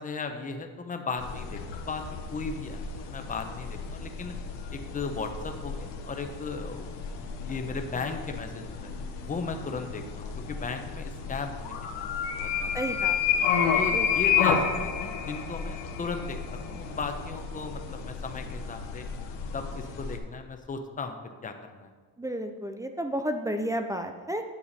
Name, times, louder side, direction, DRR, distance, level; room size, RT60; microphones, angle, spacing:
voice 1, 0.0-2.0 2.3-4.3 4.7-6.9 7.2-8.9 9.3-12.1 12.4-12.7 13.7-19.0 19.5-21.9, left 4 dB, 20° left, 6 dB, 0.7 m, -36 dB
sound 1, 1.2-20.2, left 6 dB, 75° left, 1.3 m, -31 dB
voice 2, 12.7-13.4 13.9-14.1 22.2-24.4, equal, 10° right, 6 dB, 0.3 m, -32 dB
8.7 x 7.0 x 4.1 m, 1.5 s
cardioid pair, 125°, 44 cm